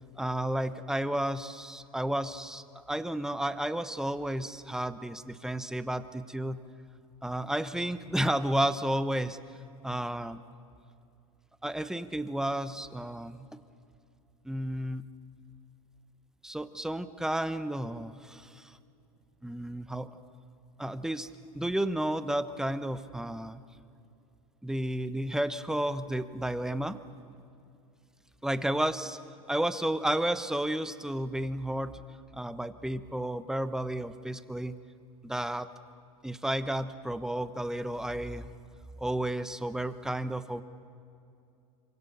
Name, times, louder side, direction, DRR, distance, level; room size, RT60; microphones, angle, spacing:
voice 1, 0.2-6.6 7.2-9.4 9.8-10.4 11.6-13.6 14.4-15.0 16.4-18.8 19.4-20.1 20.8-21.3 21.5-23.6 24.6-27.0 28.4-29.2 29.5-32.0 32.3-34.7 35.2-35.7 36.2-38.5 39.0-40.6, right 1 dB, 5° right, 12 dB, 1.1 m, -32 dB
26.5 x 24.5 x 6.9 m, 2.6 s
hypercardioid pair, 90°, 19 cm